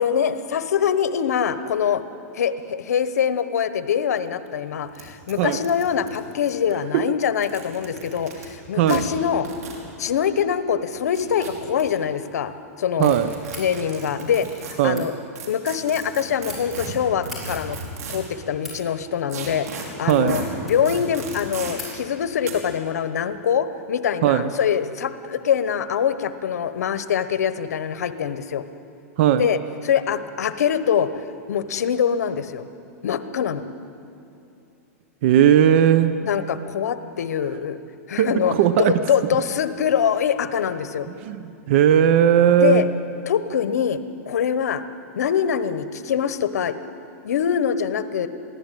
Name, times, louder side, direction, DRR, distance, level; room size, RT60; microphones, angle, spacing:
voice 1, 0.0-2.0 2.3-9.5 10.0-12.5 12.8-13.2 13.6-15.1 15.5-17.8 18.1-28.6 29.4-32.7 33.0-33.6 36.2-37.8 38.1-41.1 42.6-42.9 43.3-44.0 44.3-44.8 45.2-46.7 47.2-48.3, left 8 dB, 85° left, 12 dB, 1.0 m, -24 dB
sound 1, 4.2-4.3 4.5-4.6 4.9-5.0 5.3-6.7 7.3-8.5 8.9-9.0 9.4-9.8 10.9-11.8 13.0-14.7 15.3-18.3 19.3-19.8 20.3-20.4 20.8-21.7 22.4-22.5, right 5 dB, 85° right, 4.9 m, -35 dB
voice 2, 13.0-13.3 14.8-15.1 20.1-20.4 24.2-24.5 29.2-29.5 35.2-36.1 38.2-39.0 41.2-42.9, right 10 dB, 50° right, 12 dB, 0.8 m, -17 dB
sound 2, 13.4-13.7 14.8-15.1 16.0-16.6 17.2-17.4 18.2-18.8 19.4-19.8 20.0-21.0 21.3-21.4 21.7-21.9, left 2 dB, ahead, 6.7 m, -39 dB
22.5 x 16.0 x 9.2 m, 2.6 s
supercardioid pair, 150°, 8 cm